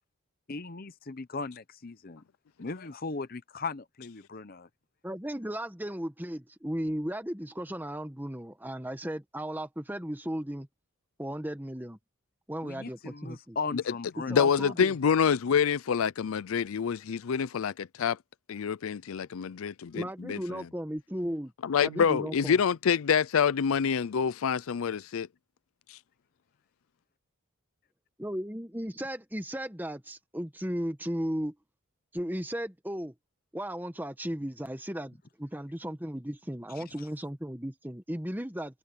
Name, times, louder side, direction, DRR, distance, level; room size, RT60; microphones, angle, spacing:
voice 1, 0.5-2.2 2.6-4.7 12.6-14.5 36.8-37.1, left 4 dB, 45° left, 0.8 m, -38 dB
voice 2, 5.0-10.7 11.2-12.0 12.5-13.6 14.3-14.9 19.9-21.5 21.8-22.6 28.2-31.5 32.1-33.1 33.5-38.7, equal, 10° right, 1.3 m, -35 dB
voice 3, 14.3-18.2 18.5-20.6 21.6-25.3, left 7 dB, 75° left, 0.4 m, -27 dB
head